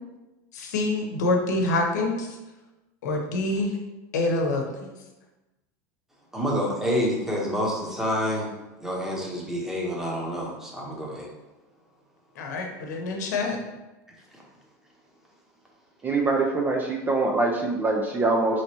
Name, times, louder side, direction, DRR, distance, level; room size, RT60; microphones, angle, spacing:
voice 1, 0.5-2.4 3.0-3.8 4.1-4.9 12.4-13.6, left 2 dB, 85° left, 2 dB, 0.8 m, -26 dB
voice 2, 6.3-8.5 8.8-11.3 14.3-14.4, equal, 5° right, -3 dB, 1.0 m, -28 dB
voice 3, 16.0-18.6, right 3 dB, 20° right, 0 dB, 0.4 m, -24 dB
4.0 x 3.2 x 2.9 m, 1.1 s
supercardioid pair, 115°, 9 cm